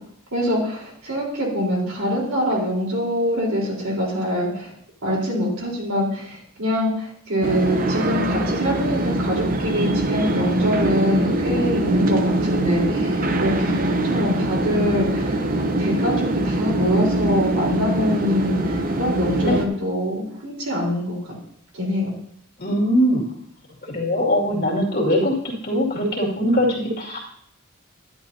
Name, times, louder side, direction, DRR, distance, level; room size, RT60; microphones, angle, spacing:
voice 1, 0.3-4.7 5.0-15.4 15.8-21.2 21.7-22.1, equal, 75° right, -3 dB, 4.0 m, -24 dB
sound 1, 7.4-19.7, right 1 dB, 40° right, 0.8 m, -23 dB
voice 2, 22.6-23.2 23.8-27.2, equal, 45° left, -2 dB, 2.4 m, -21 dB
11.5 x 10.5 x 2.8 m, 0.67 s
head